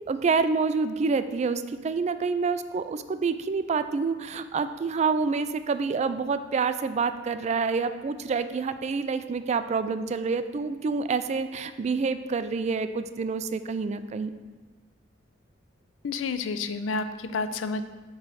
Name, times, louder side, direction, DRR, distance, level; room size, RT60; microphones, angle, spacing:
voice 1, 0.1-14.3, right 4 dB, 35° right, 11 dB, 0.3 m, -27 dB
voice 2, 16.0-17.8, left 4 dB, 85° left, 11 dB, 0.4 m, -30 dB
7.6 x 3.2 x 6.1 m, 1.3 s
head